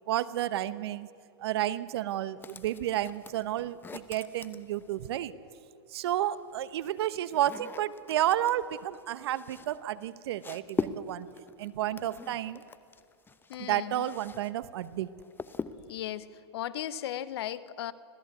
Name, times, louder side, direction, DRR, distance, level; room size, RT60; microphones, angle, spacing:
voice 1, 0.1-1.1 1.4-5.3 5.9-11.3 11.6-12.6 13.6-15.1, right 12 dB, 65° right, 16 dB, 1.0 m, -31 dB
sound 1, 2.4-5.3 6.3-14.5 14.8-16.0, left 5 dB, 15° left, 0.9 m, -42 dB
voice 2, 13.5-14.0 15.9-17.9, left 11 dB, 65° left, 16 dB, 1.0 m, -36 dB
26.0 x 17.0 x 8.3 m, 2.3 s
hypercardioid pair, 105°, 14 cm